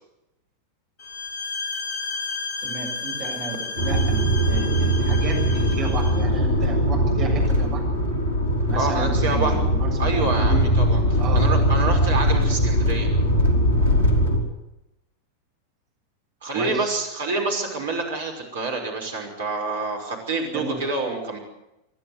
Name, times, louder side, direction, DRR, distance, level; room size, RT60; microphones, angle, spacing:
sound 1, 1.0-6.3, left 3 dB, 50° left, 3.4 m, -32 dB
voice 1, 2.6-7.8 8.7-10.6 11.2-11.5 16.5-17.0 20.5-20.8, right 4 dB, 35° right, 0 dB, 7.5 m, -33 dB
sound 2, 3.8-14.4, equal, 85° right, 3.7 m, -21 dB
voice 2, 8.7-9.6 10.0-13.1 16.4-21.4, right 3 dB, 60° right, 2 dB, 5.6 m, -27 dB
28.5 x 11.5 x 8.1 m, 0.91 s
figure-of-eight pair, 90°, 0 cm